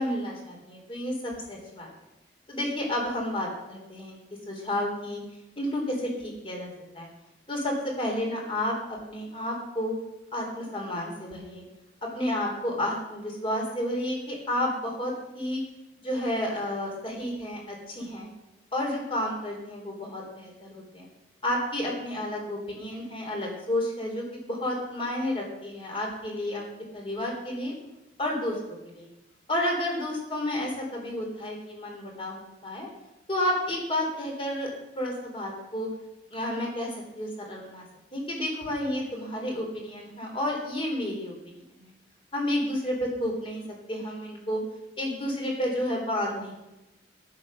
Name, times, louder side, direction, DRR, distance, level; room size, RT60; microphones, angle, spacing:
voice 1, 0.0-1.9 2.5-5.2 5.6-6.7 6.9-7.1 7.5-9.9 10.3-11.6 12.0-15.6 16.0-18.3 18.7-21.1 21.4-26.6 26.9-27.7 28.2-28.6 28.9-29.1 29.5-32.9 33.3-35.9 36.3-37.8 38.1-41.9 42.3-43.6 43.9-44.6 45.0-46.5, left 1 dB, 30° left, 0 dB, 3.5 m, -31 dB
10.5 x 9.8 x 6.5 m, 0.95 s
head